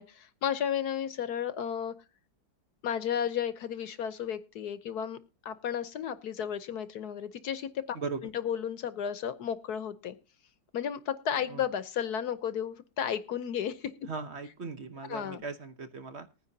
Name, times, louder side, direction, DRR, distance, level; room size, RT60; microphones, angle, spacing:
voice 1, 0.0-1.9 2.8-8.0 8.2-10.2 10.7-13.9 15.1-15.4, left 8 dB, 65° left, 13 dB, 1.3 m, -33 dB
voice 2, 14.1-16.3, right 4 dB, 45° right, 9 dB, 0.9 m, -38 dB
20.0 x 9.8 x 2.8 m, 0.31 s
omnidirectional pair, 2.0 m